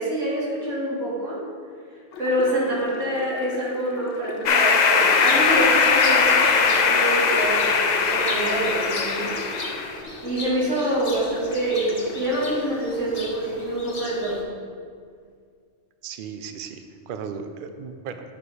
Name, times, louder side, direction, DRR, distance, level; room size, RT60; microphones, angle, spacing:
voice 1, 0.0-1.4 2.2-9.3 10.2-14.5, right 1 dB, 85° right, -7 dB, 2.4 m, -26 dB
sound 1, 2.1-12.5, left 3 dB, 75° left, 1.0 m, -39 dB
sound 2, 4.5-10.0, left 5 dB, 60° left, 0.5 m, -20 dB
sound 3, 5.2-14.4, left 2 dB, 35° left, 0.8 m, -37 dB
voice 2, 16.0-18.2, right 6 dB, 60° right, 8 dB, 0.6 m, -36 dB
7.5 x 4.8 x 4.8 m, 2.1 s
omnidirectional pair, 1.3 m